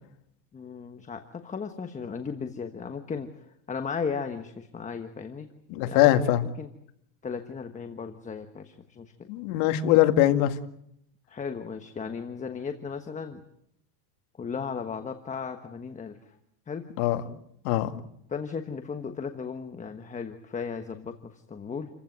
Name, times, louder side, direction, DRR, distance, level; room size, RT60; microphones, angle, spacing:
voice 1, 0.5-5.5 5.8-6.1 6.4-6.7 7.2-9.3 11.3-13.4 14.4-16.4 16.7-16.9 18.3-21.9, left 5 dB, 15° left, 7 dB, 1.3 m, -36 dB
voice 2, 5.7-6.4 9.3-10.6 17.0-17.2 17.6-17.9, left 13 dB, 70° left, 7 dB, 2.2 m, -22 dB
29.0 x 15.5 x 9.3 m, 0.75 s
cardioid pair, 150°, 46 cm